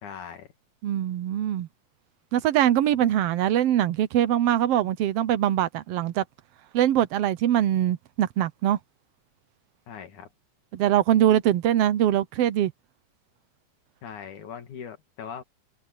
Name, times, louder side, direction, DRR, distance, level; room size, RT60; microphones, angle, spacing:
voice 1, 0.0-0.5 9.9-10.3 14.0-15.4, left 7 dB, 70° left, 3.5 m, -40 dB
voice 2, 0.8-1.7 2.3-6.2 6.7-8.8 10.7-12.7, right 11 dB, 75° right, 1.4 m, -22 dB
omnidirectional pair, 3.6 m